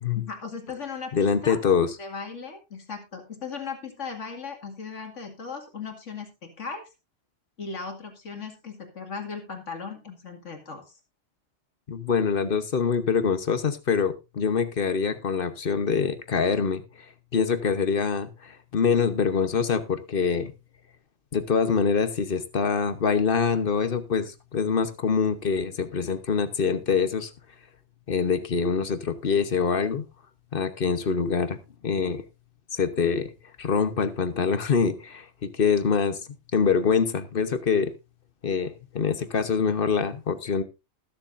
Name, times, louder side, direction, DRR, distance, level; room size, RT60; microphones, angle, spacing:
voice 1, 0.1-1.6 2.0-6.9 7.6-10.8, left 5 dB, 90° left, 4 dB, 2.5 m, -37 dB
voice 2, 1.1-1.9 11.9-16.8 17.3-20.5 21.3-27.3 28.1-30.0 30.5-31.6 31.8-32.2 32.7-33.3 33.6-36.2 36.5-37.9 38.4-40.6, left 6 dB, 50° left, 11 dB, 1.1 m, -25 dB
20.0 x 7.1 x 2.5 m, 0.25 s
omnidirectional pair, 1.2 m